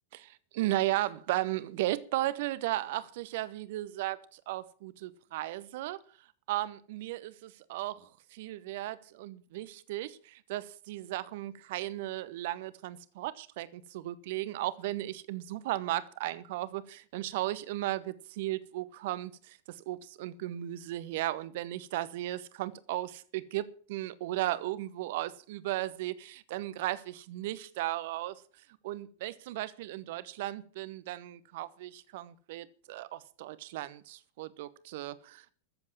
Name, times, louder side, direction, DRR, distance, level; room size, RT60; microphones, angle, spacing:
voice 1, 0.1-6.0 6.5-28.4 28.8-35.5, right 15 dB, 50° right, 1.0 m, -35 dB
14.0 x 7.7 x 7.4 m
figure-of-eight pair, 90°, 0 cm